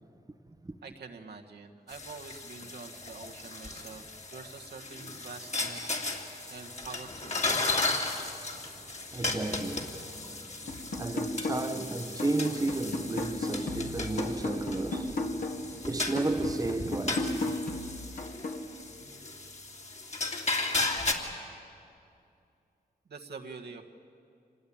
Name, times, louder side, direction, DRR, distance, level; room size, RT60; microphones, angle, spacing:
voice 1, 0.8-4.0 4.3-7.4 23.1-23.8, right 4 dB, 75° right, 1.7 m, -46 dB
sound 1, 1.9-21.1, left 2 dB, 40° left, 2.8 m, -35 dB
voice 2, 9.1-17.5, right 2 dB, 20° right, 1.0 m, -33 dB
sound 2, 10.7-11.8 12.2-15.7 16.2-18.7, left 2 dB, 60° left, 2.2 m, -35 dB
25.5 x 19.5 x 8.7 m
cardioid pair, 60°, 17 cm